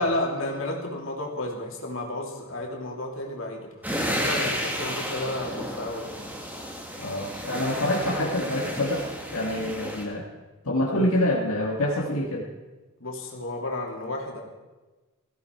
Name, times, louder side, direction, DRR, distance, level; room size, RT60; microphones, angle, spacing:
voice 1, 0.0-3.7 4.2-6.1 13.0-14.4, left 1 dB, 65° left, 0 dB, 3.0 m, -31 dB
sound 1, 3.8-10.0, equal, 10° right, 2.0 m, -32 dB
voice 2, 7.0-9.1 9.3-10.3 10.6-12.5, left 1 dB, 85° left, -2 dB, 1.8 m, -26 dB
17.0 x 15.0 x 4.7 m, 1.2 s
head